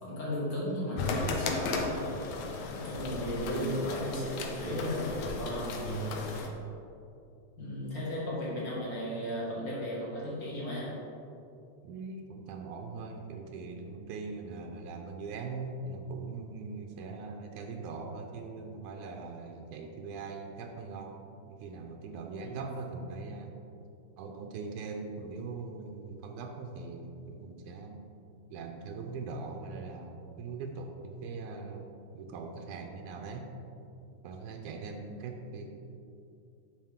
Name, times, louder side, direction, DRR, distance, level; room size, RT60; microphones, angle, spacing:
voice 1, 0.0-2.1 2.8-6.1 7.6-11.0 22.4-22.6, equal, 35° left, -6 dB, 2.0 m, -35 dB
sound 1, 1.0-6.5, left 3 dB, 75° left, 2.0 m, -35 dB
voice 2, 11.8-21.1 21.4-23.5 24.2-28.0 28.5-31.9 32.1-33.5 34.1-35.7, right 4 dB, 90° right, 3 dB, 2.1 m, -41 dB
8.9 x 6.0 x 3.6 m, 2.7 s
omnidirectional pair, 3.4 m